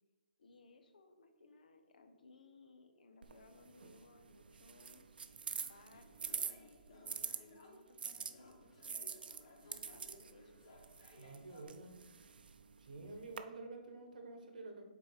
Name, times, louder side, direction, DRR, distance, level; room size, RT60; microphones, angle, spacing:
voice 1, 0.4-5.2 5.7-9.1 9.6-10.6 13.2-13.5, left 3 dB, 60° left, 7 dB, 0.8 m, -62 dB
sound 1, 3.2-7.4 8.0-13.4, right 6 dB, 80° right, 0.5 m, -46 dB
sound 2, 5.9-11.6, left 2 dB, 35° left, 1.1 m, -61 dB
voice 2, 11.2-11.9 12.8-14.8, right 3 dB, 60° right, 4 dB, 1.3 m, -49 dB
6.6 x 4.0 x 4.8 m, 1.3 s
hypercardioid pair, 175°, 5 cm